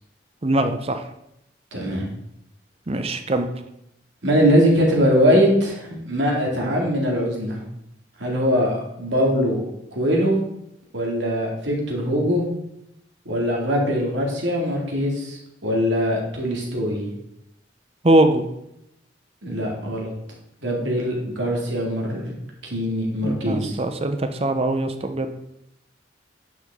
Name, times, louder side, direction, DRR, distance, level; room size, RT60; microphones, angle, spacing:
voice 1, 0.4-1.0 2.9-3.5 18.0-18.4 23.2-25.3, right 1 dB, 35° right, 7 dB, 0.7 m, -21 dB
voice 2, 1.7-2.1 4.2-7.6 8.2-9.6 9.9-10.4 10.9-12.5 13.3-17.1 19.4-20.1 20.6-22.3 22.7-23.8, equal, 80° right, -1 dB, 2.2 m, -22 dB
9.3 x 5.8 x 3.6 m, 0.80 s
head